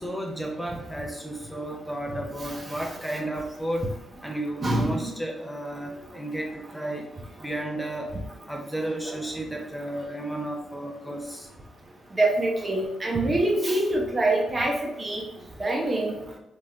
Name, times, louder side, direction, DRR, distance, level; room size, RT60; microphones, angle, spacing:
voice 1, 0.0-3.9 4.2-7.1 7.4-8.1 8.5-11.5, right 1 dB, 5° left, 0 dB, 0.6 m, -33 dB
voice 2, 4.6-5.1 9.1-9.2 12.1-15.2 15.6-16.2, right 2 dB, 40° right, 0 dB, 0.8 m, -25 dB
3.1 x 2.7 x 2.4 m, 0.87 s
hypercardioid pair, 45°, 0 cm